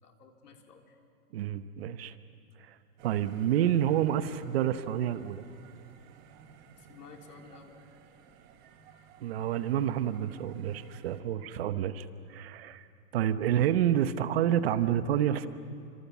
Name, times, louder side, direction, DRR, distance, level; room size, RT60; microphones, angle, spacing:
voice 1, 0.0-1.0 6.8-7.8, left 5 dB, 90° left, 2 dB, 3.8 m, -53 dB
voice 2, 1.3-2.1 2.6-2.7 3.0-5.4 9.2-12.8 13.1-15.5, right 10 dB, 40° right, 12 dB, 0.9 m, -28 dB
sound 1, 3.0-11.2, right 7 dB, 20° right, 1.2 m, -56 dB
29.0 x 26.0 x 7.2 m, 2.4 s
supercardioid pair, 165°, 46 cm